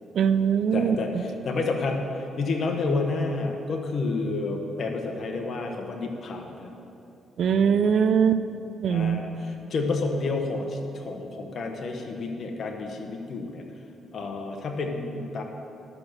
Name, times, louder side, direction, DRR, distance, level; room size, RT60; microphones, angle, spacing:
voice 1, 0.1-1.2 7.4-8.4 8.8-9.2, right 7 dB, 65° right, 12 dB, 0.5 m, -22 dB
voice 2, 0.7-6.7 8.9-13.6 14.1-15.4, left 3 dB, 55° left, 3 dB, 1.4 m, -30 dB
11.5 x 6.8 x 6.3 m, 2.7 s
cardioid pair, 90°, 0 cm